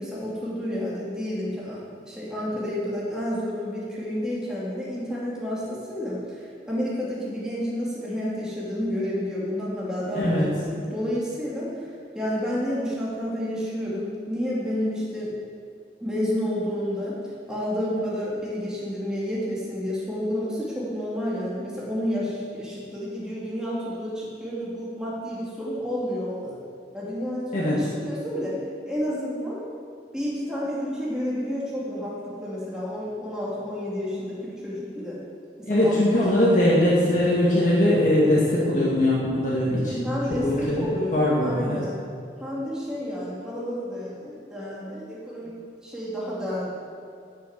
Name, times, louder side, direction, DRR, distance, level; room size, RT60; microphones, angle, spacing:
voice 1, 0.0-1.8 2.1-11.9 12.1-15.3 16.0-17.2 17.5-26.6 26.9-28.6 28.9-29.6 30.1-35.2 35.6-36.6 40.0-42.0 42.4-46.7, equal, 5° right, -7 dB, 2.5 m, -30 dB
voice 2, 10.1-10.5 27.5-27.8 35.7-40.1 40.4-41.8, left 1 dB, 45° left, -6 dB, 2.0 m, -21 dB
12.0 x 6.8 x 8.1 m, 2.3 s
head